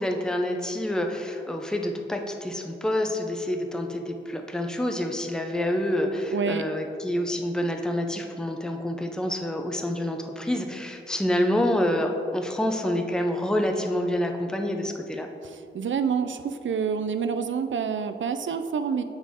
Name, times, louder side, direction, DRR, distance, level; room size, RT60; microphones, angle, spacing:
voice 1, 0.0-15.3, left 1 dB, 5° left, 3 dB, 0.5 m, -27 dB
voice 2, 6.3-6.6 15.4-19.0, right 6 dB, 75° right, 9 dB, 0.4 m, -27 dB
7.4 x 6.2 x 3.6 m, 2.5 s
wide cardioid pair, 115°, 20 cm